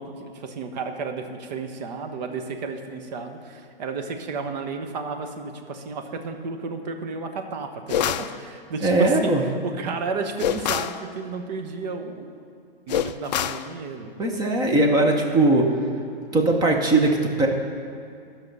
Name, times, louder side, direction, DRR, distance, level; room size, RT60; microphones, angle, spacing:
voice 1, 0.0-12.3 12.9-14.1, right 4 dB, 45° right, 5 dB, 1.1 m, -32 dB
sound 1, 7.9-8.3 10.4-11.0 12.9-13.7, left 10 dB, 45° left, 0.4 m, -25 dB
voice 2, 8.8-9.4 14.2-15.7 16.3-17.5, right 2 dB, 15° right, 2 dB, 0.9 m, -19 dB
13.5 x 5.8 x 5.4 m, 2.4 s
hypercardioid pair, 130°, 30 cm